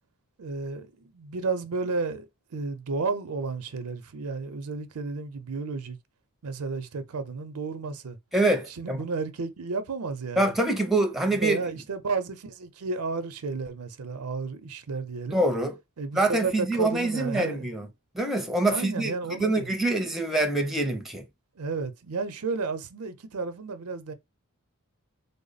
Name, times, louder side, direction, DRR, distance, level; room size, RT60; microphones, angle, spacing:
voice 1, 0.4-6.0 6.4-8.2 8.8-10.5 11.3-15.4 16.0-17.7 18.7-19.7 21.6-24.1, right 4 dB, 90° right, 0.6 m, -32 dB
voice 2, 8.3-9.0 10.4-11.6 15.3-15.8 16.1-17.9 18.1-21.2, right 2 dB, ahead, 0.5 m, -25 dB
3.4 x 2.0 x 3.9 m
head